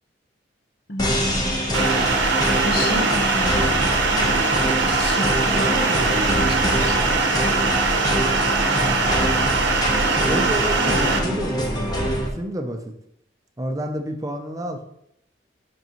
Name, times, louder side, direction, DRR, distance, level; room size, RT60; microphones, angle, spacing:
voice 1, 0.9-1.6 2.6-7.5, left 1 dB, 55° left, 4 dB, 0.9 m, -31 dB
sound 1, 1.0-12.3, equal, 20° left, 1.0 m, -25 dB
sound 2, 1.7-11.2, right 3 dB, 80° right, 1.0 m, -21 dB
voice 2, 8.7-9.3 10.2-12.8 13.6-14.8, equal, 20° right, 4 dB, 0.6 m, -30 dB
8.1 x 5.3 x 3.0 m, 0.75 s
head